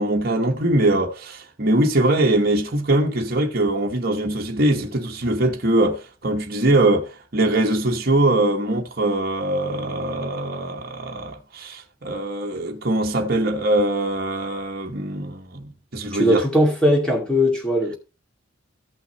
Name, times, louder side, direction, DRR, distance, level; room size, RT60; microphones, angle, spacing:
voice 1, 0.0-16.4, right 1 dB, 50° right, 1.1 m, -22 dB
voice 2, 16.1-18.0, equal, 5° left, 2.2 m, -19 dB
14.0 x 5.7 x 3.1 m
head